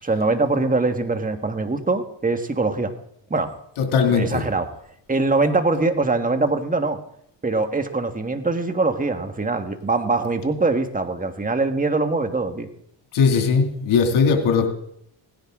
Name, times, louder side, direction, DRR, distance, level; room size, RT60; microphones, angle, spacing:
voice 1, 0.0-2.9 3.3-3.5 4.1-4.7 5.1-7.0 7.4-12.7, right 3 dB, 15° right, 6 dB, 1.7 m, -23 dB
voice 2, 3.8-4.4 13.1-14.7, left 5 dB, 75° left, 3 dB, 2.7 m, -19 dB
18.0 x 10.5 x 3.8 m, 0.71 s
supercardioid pair, 55°, 49 cm